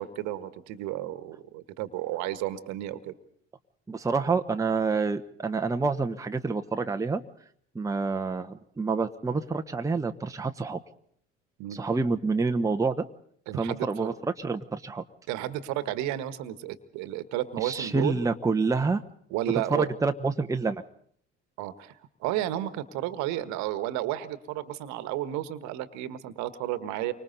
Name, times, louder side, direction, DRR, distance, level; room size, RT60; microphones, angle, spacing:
voice 1, 0.0-3.1 11.6-11.8 13.5-14.1 15.3-18.3 19.3-19.9 21.6-21.9 22.2-27.1, right 13 dB, 55° right, 13 dB, 1.4 m, -32 dB
voice 2, 3.9-7.2 7.7-10.8 11.7-13.0 13.6-15.0 17.6-19.0 19.7-20.8, right 4 dB, 10° right, 6 dB, 1.0 m, -28 dB
29.5 x 25.0 x 4.1 m, 0.64 s
figure-of-eight pair, 60°, 34 cm